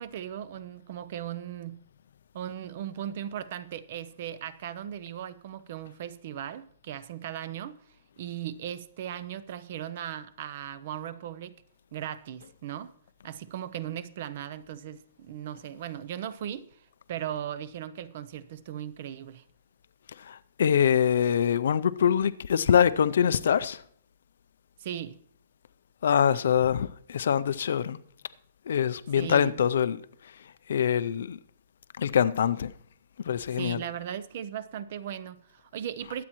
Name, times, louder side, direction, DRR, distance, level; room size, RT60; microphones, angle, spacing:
voice 1, 0.0-1.8 2.3-7.8 8.2-11.5 11.9-12.9 13.2-19.4 24.8-25.2 29.1-29.6 33.5-36.2, right 10 dB, 35° right, 0.5 m, -37 dB
voice 2, 20.2-23.8 26.0-28.0 28.7-30.0 30.7-31.4 32.0-32.7 33.2-33.8, left 8 dB, 60° left, 0.4 m, -24 dB
21.5 x 8.4 x 3.0 m
hypercardioid pair, 180°, 0 cm